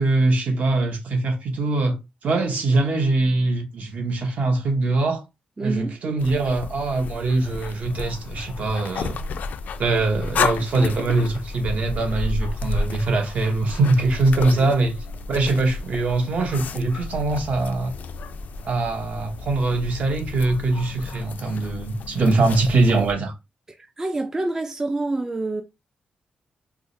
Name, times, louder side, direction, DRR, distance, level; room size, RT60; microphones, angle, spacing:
voice 1, 0.0-2.0 2.2-5.2 5.6-9.2 9.8-15.0 15.3-17.9 18.6-23.3, right 2 dB, 60° right, 0.9 m, -22 dB
voice 2, 5.6-6.0 14.5-14.7 23.7-25.6, right 2 dB, 20° right, 0.3 m, -27 dB
sound 1, 6.2-23.1, left 4 dB, 70° left, 0.3 m, -32 dB
4.6 x 2.0 x 2.6 m
wide cardioid pair, 155°, 3 cm